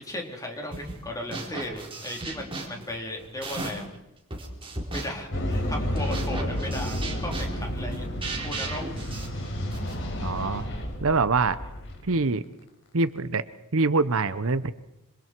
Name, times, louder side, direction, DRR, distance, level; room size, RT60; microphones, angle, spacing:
voice 1, 0.0-3.8 4.9-8.1 8.4-8.9, left 1 dB, 15° left, 1 dB, 3.9 m, -36 dB
sound 1, 0.7-1.0 1.3-3.9 4.3-10.0, right 2 dB, 25° right, 4.1 m, -36 dB
sound 2, 5.3-12.0, equal, 60° left, 4.4 m, -31 dB
voice 2, 10.2-10.6 11.0-11.6 12.0-12.4 12.9-13.4 13.7-14.7, right 3 dB, 65° right, 14 dB, 0.9 m, -24 dB
26.5 x 26.0 x 4.7 m, 0.89 s
head